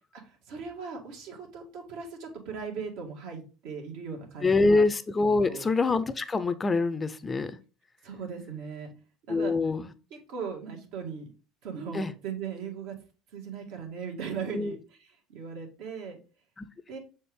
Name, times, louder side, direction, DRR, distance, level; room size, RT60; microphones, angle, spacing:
voice 1, 0.1-4.8 5.5-5.7 8.0-8.9 9.3-9.6 10.1-11.3 11.6-12.9 13.3-16.2 16.9-17.0, right 6 dB, 75° right, 1.9 m, -38 dB
voice 2, 4.4-7.6 9.3-9.9 11.9-12.1 14.5-14.8 16.6-16.7, left 3 dB, 20° left, 0.5 m, -25 dB
6.6 x 4.3 x 3.5 m
supercardioid pair, 115°, 0 cm